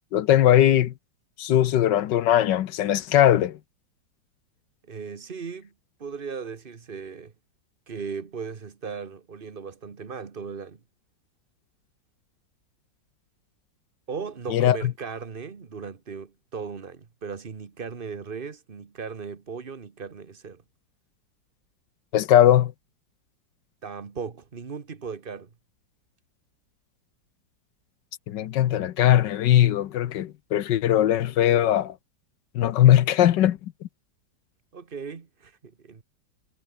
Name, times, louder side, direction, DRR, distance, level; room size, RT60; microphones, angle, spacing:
voice 1, 0.1-0.9 1.4-3.6 14.5-14.9 22.1-22.7 28.3-31.9 32.5-33.6, left 12 dB, 75° left, 1.5 m, -20 dB
voice 2, 4.8-5.7 6.0-7.3 7.9-10.8 14.1-20.6 23.8-25.5 34.7-36.0, right 5 dB, 30° right, 1.4 m, -37 dB
omnidirectional pair, 2.0 m